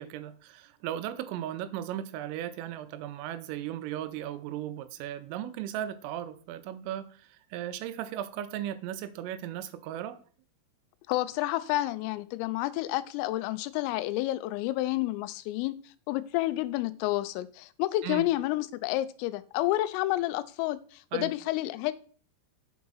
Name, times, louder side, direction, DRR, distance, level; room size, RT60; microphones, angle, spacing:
voice 1, 0.0-10.2 18.0-18.3 21.1-21.3, right 11 dB, 85° right, 3.2 m, -36 dB
voice 2, 11.1-15.8 16.1-21.9, left 16 dB, 90° left, 3.2 m, -30 dB
6.9 x 4.8 x 5.5 m
omnidirectional pair, 5.9 m